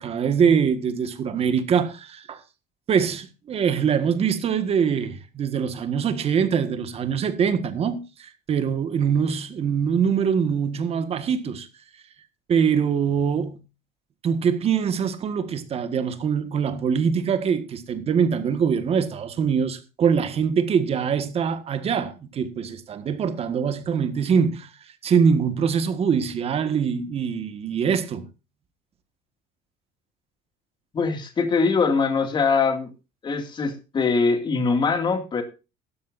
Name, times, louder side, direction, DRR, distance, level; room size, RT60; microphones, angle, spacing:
voice 1, 0.0-2.4 2.9-11.7 12.5-13.6 14.2-24.7 25.0-28.3, right 7 dB, 30° right, 1.6 m, -23 dB
voice 2, 30.9-32.9 33.2-35.4, left 4 dB, 25° left, 2.2 m, -22 dB
16.0 x 12.5 x 2.6 m
cardioid pair, 155°, 19 cm